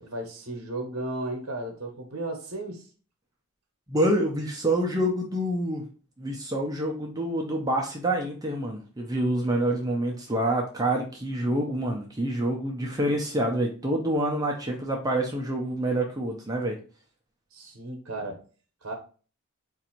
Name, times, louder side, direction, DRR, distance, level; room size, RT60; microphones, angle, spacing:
voice 1, 0.0-2.8 17.5-18.4 18.8-18.9, right 2 dB, 60° right, 1 dB, 0.9 m, -34 dB
voice 2, 3.9-5.9 6.2-16.8, right 1 dB, 15° right, 0 dB, 0.5 m, -27 dB
3.9 x 2.5 x 4.3 m, 0.39 s
head